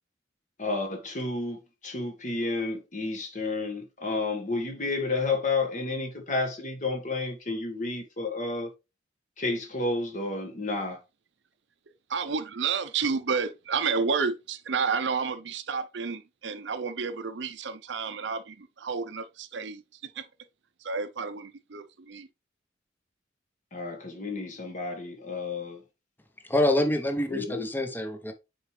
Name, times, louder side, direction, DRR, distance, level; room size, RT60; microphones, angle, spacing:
voice 1, 0.6-8.7 9.4-11.0 23.7-25.8 27.3-27.7, left 3 dB, 40° left, 1.5 m, -31 dB
voice 2, 12.1-19.8 20.2-20.3 20.8-22.3, right 5 dB, 70° right, 0.6 m, -30 dB
voice 3, 26.4-28.3, left 1 dB, 10° left, 0.8 m, -26 dB
6.6 x 4.7 x 3.2 m
head